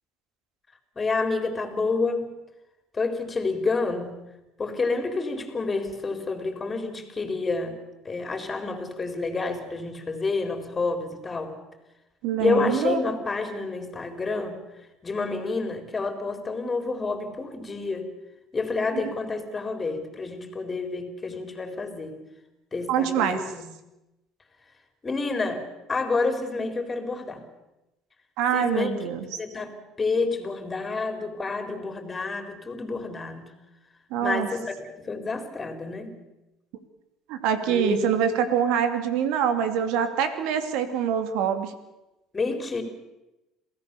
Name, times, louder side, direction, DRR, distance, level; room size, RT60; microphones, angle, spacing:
voice 1, 1.0-2.3 2.9-4.2 4.6-7.8 8.0-11.5 12.4-14.6 15.0-18.1 18.5-22.1 22.7-23.7 25.0-25.6 25.9-27.4 28.5-29.1 29.4-33.5 34.2-36.2 37.7-38.0 42.3-42.8, left 3 dB, 25° left, 7 dB, 4.1 m, -29 dB
voice 2, 12.2-13.0 19.0-19.1 22.9-23.4 28.4-29.3 34.1-34.5 37.3-41.7, right 8 dB, 75° right, 9 dB, 2.8 m, -25 dB
27.5 x 17.0 x 7.0 m, 0.97 s
supercardioid pair, 90°, 0 cm